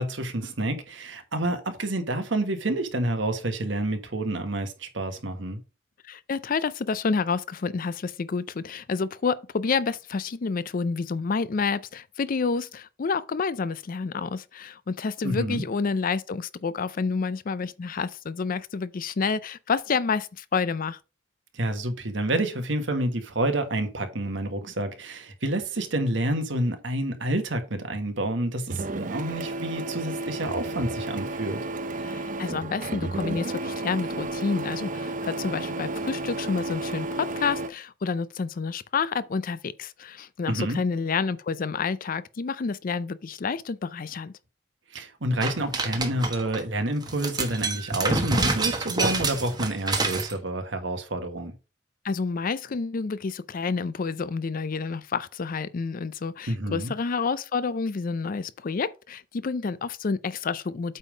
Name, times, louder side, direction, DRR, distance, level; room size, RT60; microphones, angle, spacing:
voice 1, 0.0-5.6 15.2-15.6 21.5-31.6 40.5-40.8 44.9-51.6 56.5-56.9, right 1 dB, 70° right, 1.4 m, -28 dB
voice 2, 6.0-21.0 32.0-44.3 52.0-61.0, left 5 dB, 50° left, 0.5 m, -29 dB
Printer, 28.7-37.7, right 2 dB, 45° right, 0.6 m, -32 dB
sound 1, 45.4-46.6 47.0-50.3, right 3 dB, 20° right, 1.1 m, -27 dB
8.3 x 3.6 x 5.0 m
head